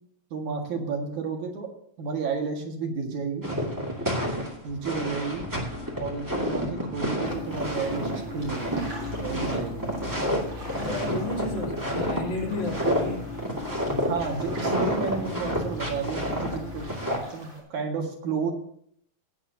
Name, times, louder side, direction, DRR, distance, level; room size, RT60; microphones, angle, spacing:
voice 1, 0.3-1.7 2.0-3.5 4.6-5.5 6.0-8.8 9.2-9.8 14.0-16.9 17.3-18.5, right 5 dB, 80° right, 1 dB, 3.3 m, -31 dB
sound 1, 3.4-12.2 12.6-13.1 13.4-17.2, equal, 10° right, 1.6 m, -29 dB
sound 2, 5.0-16.9, left 3 dB, 50° left, 0.8 m, -39 dB
sound 3, 7.2-17.6, right 1 dB, 40° right, 4.1 m, -46 dB
voice 2, 10.7-13.3, left 2 dB, 75° left, -2 dB, 4.3 m, -32 dB
17.0 x 9.3 x 2.8 m, 0.64 s
omnidirectional pair, 3.3 m